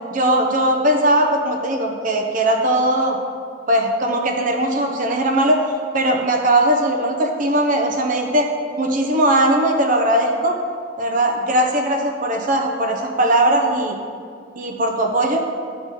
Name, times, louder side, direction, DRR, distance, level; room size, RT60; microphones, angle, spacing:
voice 1, 0.1-3.2 3.7-5.6 5.9-8.5 8.8-10.5 11.0-13.9 14.6-15.4, right 1 dB, 45° right, 2 dB, 0.7 m, -19 dB
11.0 x 3.6 x 4.1 m, 2.2 s
head